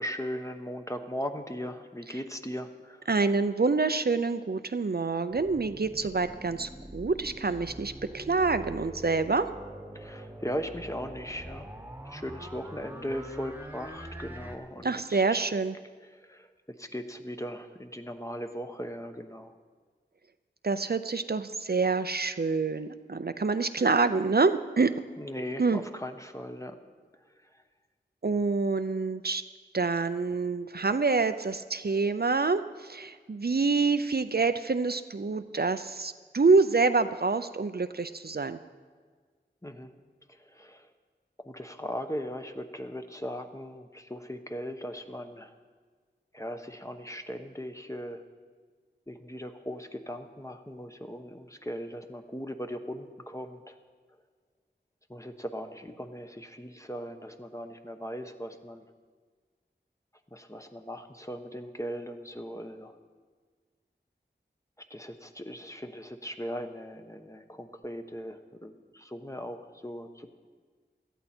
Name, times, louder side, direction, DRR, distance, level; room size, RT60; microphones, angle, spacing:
voice 1, 0.0-3.1 9.9-11.7 12.0-15.5 16.1-16.5 16.8-19.5 25.2-26.7 27.5-27.6 39.6-39.9 40.3-40.9 41.4-45.5 46.3-48.2 49.1-53.8 55.1-58.8 60.3-63.0 64.9-70.3, equal, 15° left, 6 dB, 1.0 m, -38 dB
voice 2, 3.1-9.5 14.8-15.8 20.6-24.9 25.6-25.8 28.2-29.4 29.7-38.6, right 4 dB, 60° right, 11 dB, 0.5 m, -27 dB
sound 1, 5.3-14.6, right 1 dB, 10° right, 1.3 m, -44 dB
17.5 x 12.5 x 4.4 m, 1.5 s
wide cardioid pair, 40°, 19 cm